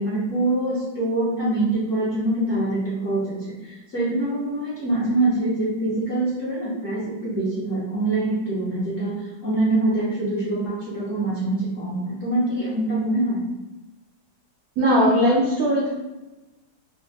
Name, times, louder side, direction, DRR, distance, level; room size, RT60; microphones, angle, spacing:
voice 1, 0.0-3.3 3.6-13.4, right 2 dB, 50° left, -9 dB, 1.0 m, -24 dB
voice 2, 14.8-15.9, equal, 70° right, -5 dB, 0.9 m, -19 dB
4.2 x 2.1 x 2.6 m, 1.1 s
omnidirectional pair, 2.1 m